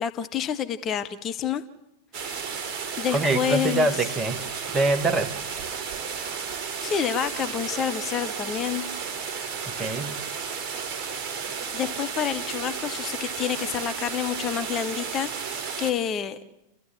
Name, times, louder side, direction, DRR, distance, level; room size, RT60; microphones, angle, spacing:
voice 1, 0.0-1.6 2.2-2.6 3.0-3.9 6.8-8.8 11.7-16.4, left 8 dB, 30° left, 10 dB, 1.1 m, -28 dB
sound 1, 2.1-15.9, right 6 dB, 30° right, 4.0 m, -33 dB
voice 2, 3.1-4.4 4.7-5.3 9.8-10.2, right 2 dB, 15° right, 6 dB, 1.8 m, -24 dB
29.5 x 13.0 x 9.2 m, 0.91 s
figure-of-eight pair, 90°, 0 cm